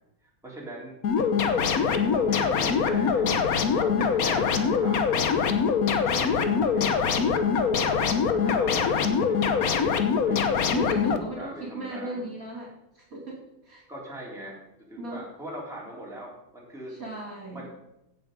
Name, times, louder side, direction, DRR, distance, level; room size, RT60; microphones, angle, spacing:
voice 1, 0.2-1.0 1.5-6.0 6.4-7.8 8.3-9.7 10.2-10.5 11.1-12.2 13.9-14.6 14.9-16.9 17.5-17.7, right 1 dB, ahead, -4 dB, 3.3 m, -41 dB
sound 1, 1.0-11.2, left 6 dB, 55° left, 1.2 m, -23 dB
voice 2, 8.0-8.8 10.7-13.8 15.0-15.2 16.9-17.7, right 2 dB, 40° right, -2 dB, 3.0 m, -38 dB
16.5 x 7.0 x 5.2 m, 0.88 s
omnidirectional pair, 2.2 m